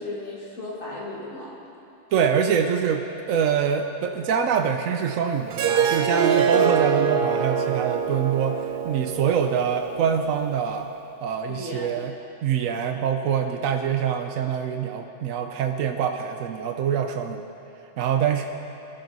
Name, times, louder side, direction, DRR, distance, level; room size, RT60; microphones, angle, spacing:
voice 1, 0.0-1.6 11.5-11.9, left 2 dB, 80° left, -5 dB, 2.8 m, -35 dB
voice 2, 2.1-10.9 11.2-12.1 12.4-17.4 18.0-18.5, right 7 dB, 90° right, 5 dB, 1.1 m, -25 dB
Harp, 5.5-10.7, right 7 dB, 55° right, 0.7 m, -24 dB
21.5 x 11.0 x 4.1 m, 2.7 s
omnidirectional pair, 1.3 m